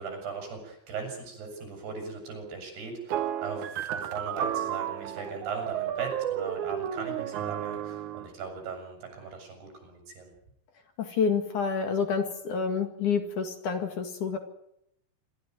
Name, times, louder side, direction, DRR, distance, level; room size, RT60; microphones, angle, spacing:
voice 1, 0.0-10.3, right 5 dB, 80° right, 4 dB, 8.6 m, -38 dB
sound 1, 3.1-8.3, right 10 dB, 65° right, 2.2 m, -32 dB
voice 2, 11.0-14.4, left 6 dB, 55° left, 7 dB, 3.2 m, -28 dB
26.5 x 13.5 x 9.3 m, 0.77 s
omnidirectional pair, 4.5 m